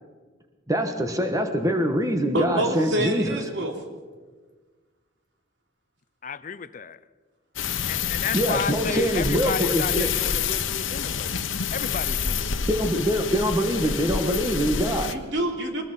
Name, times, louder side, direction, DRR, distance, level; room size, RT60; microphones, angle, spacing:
voice 1, 0.7-3.3 8.3-10.1 12.7-15.1, equal, 15° right, 1.5 m, -24 dB
voice 2, 2.3-3.9 15.1-15.8, right 1 dB, 65° right, 3.2 m, -27 dB
voice 3, 6.2-7.0 7.8-11.4 11.7-12.6, left 5 dB, 40° left, 0.5 m, -32 dB
sound 1, 7.6-15.1, left 7 dB, 80° left, 1.1 m, -28 dB
23.0 x 20.0 x 5.7 m
head